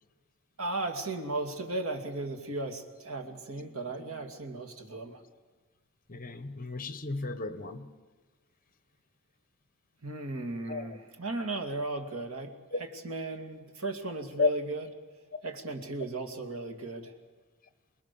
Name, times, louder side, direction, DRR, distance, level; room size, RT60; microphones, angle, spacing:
voice 1, 0.6-5.2 10.0-14.9 15.4-17.2, right 2 dB, 70° right, 5 dB, 2.6 m, -36 dB
voice 2, 6.1-7.9 10.7-11.0 12.7-12.8 14.4-14.5, left 4 dB, 40° left, 11 dB, 1.2 m, -32 dB
28.0 x 20.5 x 7.0 m, 1.3 s
head